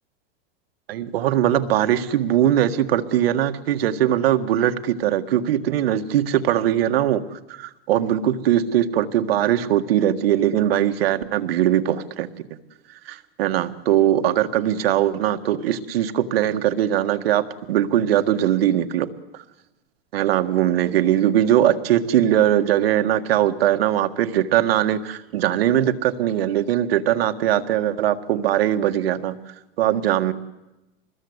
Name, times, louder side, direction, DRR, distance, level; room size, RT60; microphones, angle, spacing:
voice 1, 0.9-12.3 13.1-19.1 19.3-19.4 20.1-29.3 29.8-30.3, right 11 dB, 85° right, 9 dB, 1.8 m, -20 dB
25.5 x 21.0 x 8.1 m, 0.99 s
supercardioid pair, 155°, 29 cm